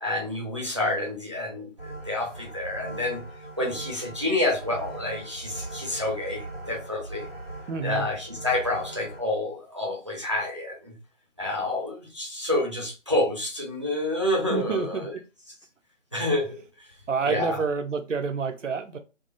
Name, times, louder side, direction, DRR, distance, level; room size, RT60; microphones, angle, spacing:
voice 1, 0.0-3.2 3.6-7.3 7.8-10.9 11.4-15.1 16.1-16.6 17.2-17.6, left 1 dB, 25° right, 0.5 m, -28 dB
sound 1, 1.8-9.2, right 2 dB, 45° right, 1.8 m, -40 dB
voice 2, 7.7-8.1 14.5-15.1 17.1-19.0, right 5 dB, 75° right, 0.7 m, -28 dB
3.5 x 2.0 x 3.9 m
figure-of-eight pair, 150°, 38 cm